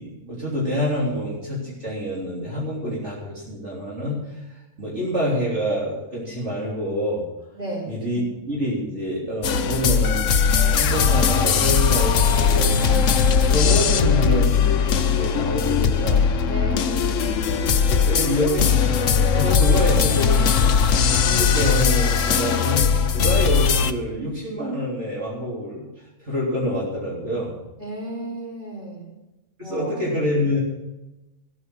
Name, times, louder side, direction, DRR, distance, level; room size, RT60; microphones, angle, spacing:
voice 1, 0.0-7.2 7.9-8.2 8.5-10.2 10.7-13.1 13.4-16.3 17.6-22.9 23.1-25.9 26.2-27.5 29.6-30.6, equal, 55° right, -6 dB, 3.8 m, -26 dB
voice 2, 7.5-8.0 16.5-17.4 27.8-29.1 29.6-29.9, right 1 dB, 40° right, -4 dB, 5.2 m, -33 dB
sound 1, 9.4-23.9, left 6 dB, 70° left, 1.1 m, -19 dB
14.0 x 10.5 x 6.2 m, 0.99 s
omnidirectional pair, 1.4 m